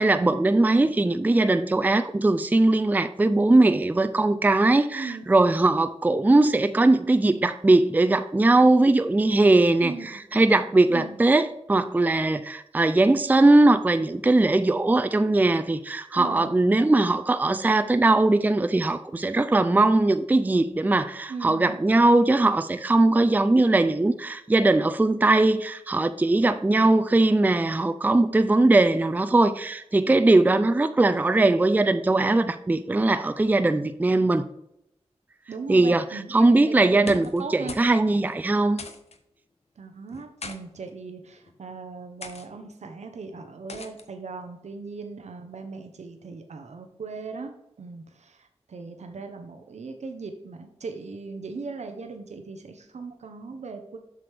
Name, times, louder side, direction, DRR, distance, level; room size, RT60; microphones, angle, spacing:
voice 1, 0.0-9.9 10.3-34.4 35.7-36.0 36.3-38.8, right 2 dB, 15° right, 11 dB, 0.4 m, -20 dB
voice 2, 9.8-10.2 10.9-11.2 16.2-16.7 21.3-21.8 23.6-23.8 26.7-26.9 35.5-38.2 39.8-54.0, right 4 dB, 90° right, 6 dB, 0.8 m, -38 dB
sound 1, 36.9-37.4 37.7-37.9 38.2-38.3 38.8-39.2 40.1-40.6 41.4-41.6 42.2-42.5 43.7-44.1, left 4 dB, 65° left, 0.8 m, -39 dB
7.6 x 6.2 x 3.4 m, 0.81 s
wide cardioid pair, 100°, 11 cm